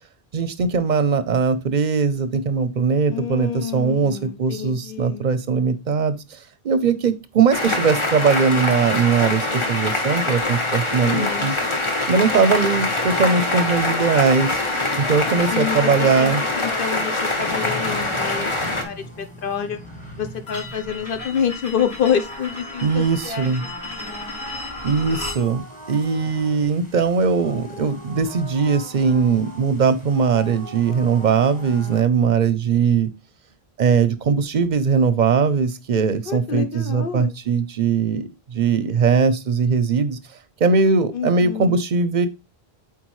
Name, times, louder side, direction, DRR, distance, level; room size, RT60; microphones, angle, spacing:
voice 1, 0.3-6.2 6.6-11.5 12.1-14.6 15.0-16.4 22.8-23.6 24.8-25.6 25.9-33.1 33.8-40.2 40.6-42.3, right 5 dB, 50° right, 0.7 m, -20 dB
voice 2, 3.1-5.3 11.0-11.5 15.5-19.8 20.2-24.2 36.3-37.3 41.1-41.8, left 8 dB, 65° left, 0.8 m, -28 dB
sound 1, 7.5-18.8, left 2 dB, 30° left, 1.0 m, -24 dB
sound 2, 17.4-32.0, equal, 10° left, 1.5 m, -40 dB
sound 3, 20.5-25.4, left 2 dB, 90° left, 2.9 m, -35 dB
8.3 x 4.2 x 3.1 m
omnidirectional pair, 1.0 m